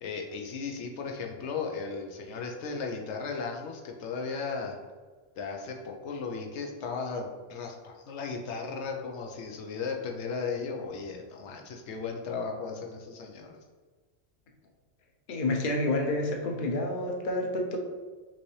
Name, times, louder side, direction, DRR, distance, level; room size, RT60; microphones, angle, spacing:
voice 1, 0.0-4.8 5.4-13.6, left 5 dB, 90° left, 2 dB, 1.0 m, -36 dB
voice 2, 15.3-17.8, left 2 dB, 55° left, 1 dB, 0.8 m, -29 dB
5.9 x 2.7 x 3.1 m, 1.4 s
omnidirectional pair, 1.1 m